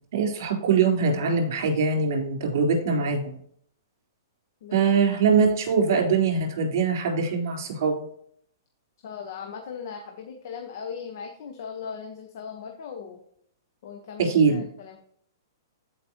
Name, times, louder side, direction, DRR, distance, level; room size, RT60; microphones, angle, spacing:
voice 1, 0.1-3.4 4.7-8.0 14.2-14.6, right 5 dB, 60° right, 1 dB, 3.9 m, -22 dB
voice 2, 4.6-4.9 9.0-13.2 13.8-15.0, left 6 dB, 55° left, 4 dB, 1.2 m, -38 dB
14.5 x 5.2 x 3.0 m, 0.64 s
hypercardioid pair, 150°, 2 cm